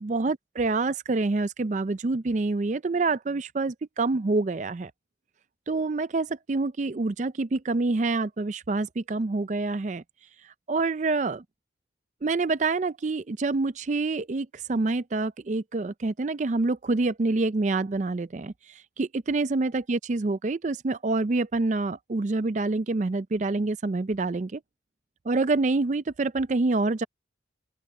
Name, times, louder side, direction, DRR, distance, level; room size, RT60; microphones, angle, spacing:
voice 1, 0.0-4.9 5.7-10.0 10.4-11.4 12.2-24.6 25.2-27.0, right 3 dB, 40° right, 0.4 m, -27 dB
open air
head